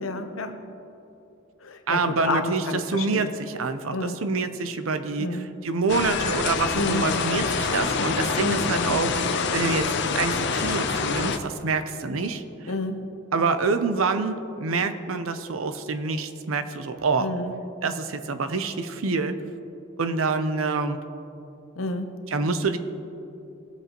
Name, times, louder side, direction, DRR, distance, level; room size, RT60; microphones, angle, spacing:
voice 1, 0.0-0.6 1.6-3.3 3.9-4.2 5.2-5.5 6.8-7.1 8.3-8.7 12.7-13.0 17.2-17.5 21.8-22.1, left 2 dB, 80° left, 7 dB, 0.9 m, -30 dB
voice 2, 1.9-9.1 9.5-9.9 10.1-12.4 13.3-17.3 17.8-19.4 20.0-21.0 22.3-22.8, right 4 dB, 80° right, 10 dB, 0.7 m, -26 dB
sound 1, 5.9-11.4, left 5 dB, 55° left, 0.6 m, -26 dB
19.0 x 8.1 x 3.0 m, 2.9 s
head